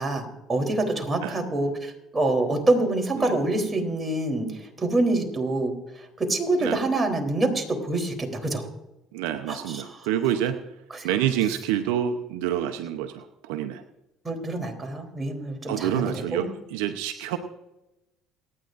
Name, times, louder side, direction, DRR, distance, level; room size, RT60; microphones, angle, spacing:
voice 1, 0.0-8.7 9.5-9.8 11.0-11.1 14.2-16.0 16.3-16.5, right 2 dB, 25° right, 3 dB, 3.5 m, -26 dB
voice 2, 9.1-10.6 11.0-13.8 15.7-17.4, right 10 dB, 85° right, 8 dB, 0.8 m, -27 dB
28.5 x 9.7 x 2.6 m, 0.95 s
supercardioid pair, 75°, 0 cm